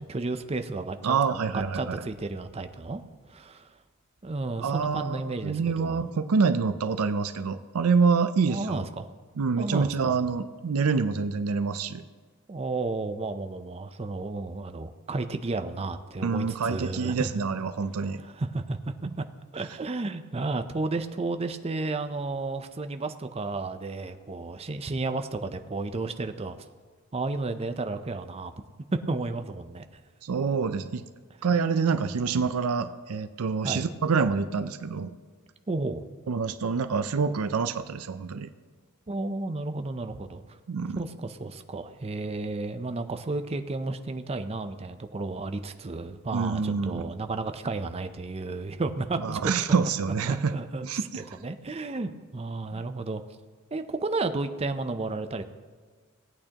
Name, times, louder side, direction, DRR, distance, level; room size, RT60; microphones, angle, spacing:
voice 1, 0.0-1.2 1.5-3.0 3.3-3.7 4.2-6.0 8.5-9.1 9.6-10.1 12.5-17.4 18.2-19.2 19.5-26.6 27.1-28.5 28.9-29.8 33.6-33.9 35.7-36.0 39.1-40.4 41.0-49.5 50.3-53.2 53.7-55.4, right 3 dB, 30° right, 9 dB, 0.5 m, -32 dB
voice 2, 1.0-2.0 4.6-8.9 9.4-12.0 16.2-18.2 30.2-31.0 31.4-35.1 36.3-38.5 40.7-41.1 46.3-47.0 49.2-50.5 50.8-51.4 52.7-52.8, right 5 dB, 80° right, 10 dB, 0.5 m, -26 dB
18.0 x 8.7 x 2.9 m, 1.5 s
head